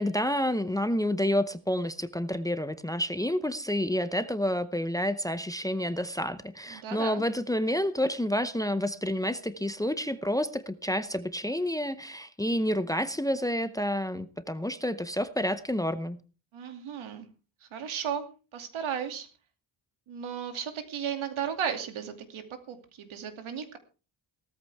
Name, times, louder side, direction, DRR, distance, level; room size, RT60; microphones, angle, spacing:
voice 1, 0.0-16.2, equal, 10° left, 0.7 m, -29 dB
voice 2, 6.7-7.2 16.5-17.3 17.6-18.3 18.5-19.3 20.1-23.8, right 8 dB, 90° right, 2.6 m, -35 dB
17.0 x 14.0 x 3.5 m
wide cardioid pair, 155°, 47 cm